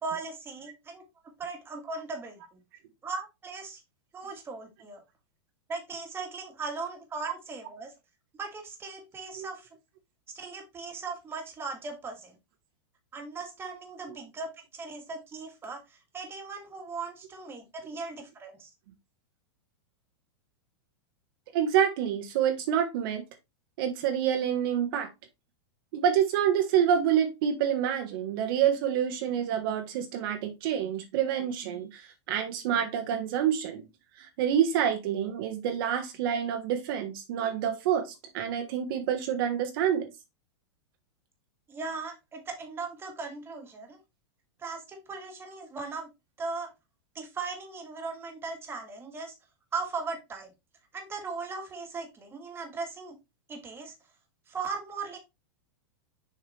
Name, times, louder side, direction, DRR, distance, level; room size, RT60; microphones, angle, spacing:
voice 1, 0.0-1.1 1.4-2.6 3.0-3.8 4.1-5.0 5.7-7.9 8.3-9.7 10.3-12.3 13.1-18.7 41.7-44.0 44.6-46.1 46.4-46.7 47.2-49.4 49.7-50.5 50.9-53.2 53.5-53.9 54.5-55.2, right 4 dB, 15° right, 1.8 m, -38 dB
voice 2, 21.5-23.2 23.8-25.1 25.9-33.8 34.2-40.1, right 9 dB, 60° right, 1.3 m, -27 dB
6.8 x 4.6 x 3.2 m
supercardioid pair, 140°, 14 cm